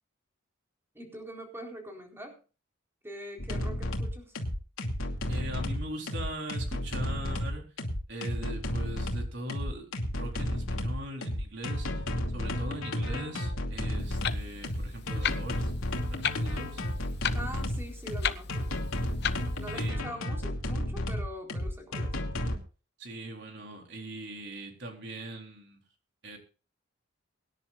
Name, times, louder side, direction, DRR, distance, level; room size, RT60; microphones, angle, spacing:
voice 1, 0.9-2.4 3.0-4.4 17.3-18.7 19.6-22.2, equal, 10° right, 1 dB, 4.2 m, -43 dB
sound 1, 3.4-22.6, left 1 dB, 85° left, 2.7 m, -32 dB
voice 2, 5.3-7.6 8.1-12.1 12.3-15.7 16.1-16.8 19.7-20.1 23.0-25.8 26.2-26.4, right 1 dB, 55° right, 2 dB, 4.0 m, -41 dB
Clock, 14.0-19.9, left 7 dB, 50° left, 0.8 m, -36 dB
24.0 x 10.5 x 2.6 m, 0.35 s
head